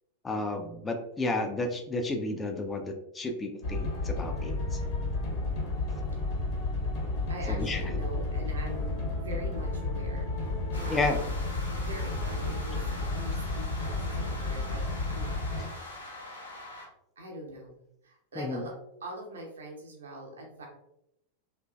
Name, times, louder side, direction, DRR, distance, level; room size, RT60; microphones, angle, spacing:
voice 1, 0.2-4.8 7.5-7.9 10.9-11.2 18.4-18.6, left 2 dB, 15° left, 4 dB, 0.4 m, -32 dB
sound 1, 3.6-15.7, left 2 dB, 45° left, 0.9 m, -32 dB
voice 2, 7.3-11.1 11.8-14.8 15.1-15.4 17.2-17.7 18.0-18.7 19.0-20.6, right 1 dB, 65° right, -1 dB, 0.7 m, -43 dB
sound 2, 10.7-16.9, left 2 dB, 80° left, 0.7 m, -43 dB
2.9 x 2.5 x 2.2 m, 0.79 s
figure-of-eight pair, 90°, 0 cm